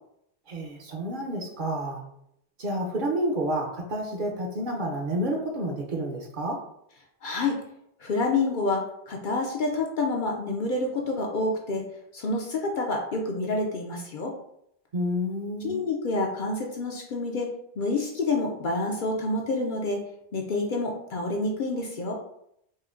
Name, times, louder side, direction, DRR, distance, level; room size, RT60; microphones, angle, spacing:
voice 1, 0.5-2.0 2.6-6.6 14.9-15.8, right 1 dB, 55° right, -1 dB, 0.8 m, -29 dB
voice 2, 7.2-7.6 8.0-11.8 12.1-14.3 15.6-20.0 20.3-22.2, left 2 dB, 60° left, 0 dB, 0.6 m, -28 dB
4.3 x 2.6 x 2.5 m, 0.74 s
omnidirectional pair, 1.1 m